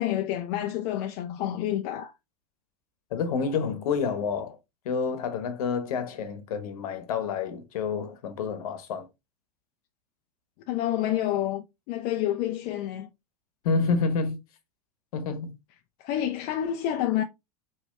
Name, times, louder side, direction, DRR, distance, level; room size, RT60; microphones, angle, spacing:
voice 1, 0.0-2.1 10.7-13.1 16.0-17.2, left 12 dB, 50° left, 0.6 m, -28 dB
voice 2, 3.1-4.6 4.8-9.1 13.6-14.4 15.1-15.6, left 5 dB, 65° left, 1.2 m, -28 dB
5.0 x 3.0 x 3.2 m
hypercardioid pair, 90°, 20 cm